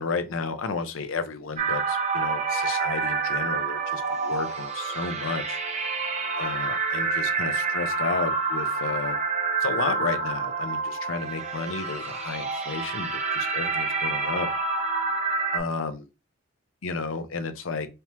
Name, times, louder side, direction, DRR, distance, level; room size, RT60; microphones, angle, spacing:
voice 1, 0.0-5.6 6.4-9.2 9.6-14.5 15.5-16.1 16.8-17.9, left 4 dB, 85° left, 0.6 m, -32 dB
sound 1, 1.6-15.6, right 4 dB, 35° right, 0.6 m, -28 dB
3.4 x 2.9 x 2.9 m
head